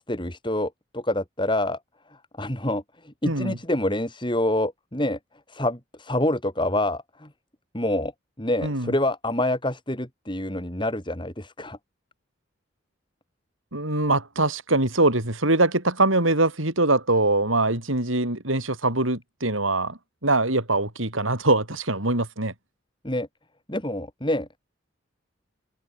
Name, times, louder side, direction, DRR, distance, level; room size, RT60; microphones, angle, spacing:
voice 1, 0.0-1.8 2.4-5.2 5.5-7.3 7.7-8.1 8.4-11.8 23.0-23.3 23.7-24.5, left 1 dB, 25° left, 5.0 m, -27 dB
voice 2, 3.2-3.6 8.6-8.9 13.7-22.5, right 2 dB, 90° right, 7.9 m, -23 dB
head